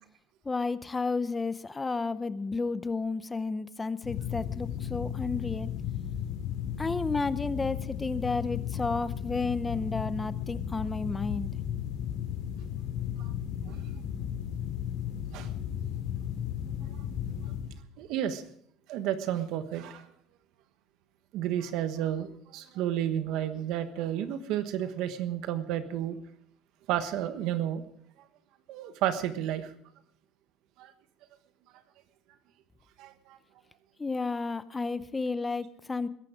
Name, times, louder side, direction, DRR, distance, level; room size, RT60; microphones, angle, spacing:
voice 1, 0.5-5.7 6.8-11.5 34.0-36.1, left 3 dB, 15° left, 14 dB, 0.7 m, -32 dB
sound 1, 4.0-17.7, left 9 dB, 75° left, 4.4 m, -35 dB
voice 2, 18.0-18.4 18.9-20.1 21.3-26.2 26.9-27.8 28.7-29.7 30.8-30.9 33.0-33.4, right 11 dB, 65° right, 10 dB, 1.2 m, -31 dB
21.5 x 11.0 x 4.9 m, 0.66 s
cardioid pair, 130°, 0 cm